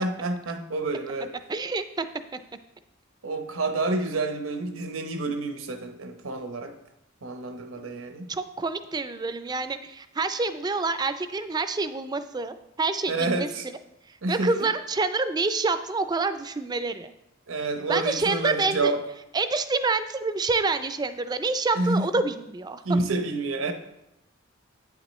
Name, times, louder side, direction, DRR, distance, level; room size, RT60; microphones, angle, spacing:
voice 1, 0.0-1.3 3.2-6.8 7.2-8.3 13.1-13.7 14.2-14.7 17.5-19.0 21.7-22.2 22.8-23.7, right 2 dB, 85° right, 6 dB, 0.8 m, -28 dB
voice 2, 1.5-2.1 7.8-7.9 8.3-13.5 14.3-17.1 17.9-18.9 19.3-22.8, right 3 dB, 20° right, 11 dB, 0.3 m, -27 dB
9.0 x 7.2 x 3.1 m, 0.87 s
head